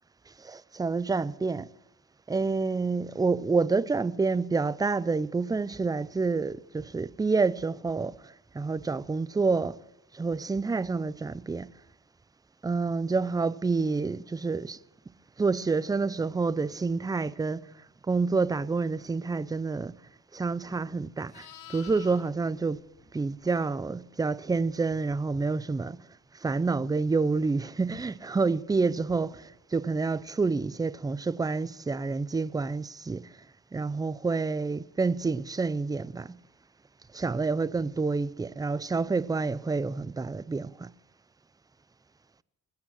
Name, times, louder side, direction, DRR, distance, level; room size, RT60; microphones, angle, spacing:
voice 1, 0.4-1.7 2.3-9.8 10.1-11.7 12.6-14.8 15.4-17.7 18.1-20.0 20.3-22.8 23.1-26.0 26.4-33.3 33.7-36.4 37.1-40.9, right 4 dB, 15° right, 0.5 m, -28 dB
Livestock farm animals working animals, 20.6-23.9 28.2-28.5, left 12 dB, 80° left, 1.3 m, -52 dB
21.5 x 8.7 x 7.5 m
cardioid pair, 90°, 30 cm